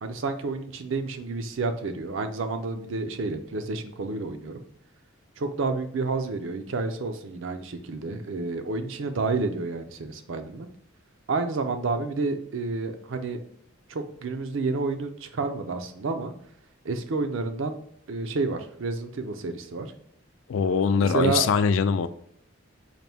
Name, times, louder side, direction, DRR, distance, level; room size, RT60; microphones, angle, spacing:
voice 1, 0.0-4.6 5.4-10.7 11.3-13.4 13.9-16.3 16.8-17.8 18.1-19.9 21.0-21.4, right 3 dB, 70° right, 7 dB, 0.5 m, -29 dB
voice 2, 20.5-22.1, left 6 dB, 70° left, 12 dB, 0.3 m, -22 dB
4.2 x 2.5 x 3.4 m, 0.71 s
head